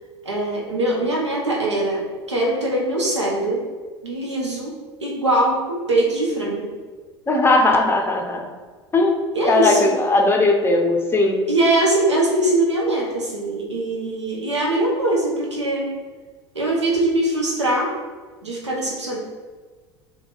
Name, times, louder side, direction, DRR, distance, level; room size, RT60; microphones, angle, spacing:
voice 1, 0.2-2.0 2.3-3.6 4.0-4.7 5.0-6.7 9.3-9.9 11.5-15.9 16.5-17.9 18.4-19.2, right 1 dB, 85° right, -2 dB, 0.7 m, -22 dB
voice 2, 7.3-8.4 8.9-9.2 9.5-11.4, left 2 dB, 15° left, 2 dB, 0.5 m, -18 dB
2.8 x 2.2 x 4.0 m, 1.4 s
figure-of-eight pair, 75°, 15 cm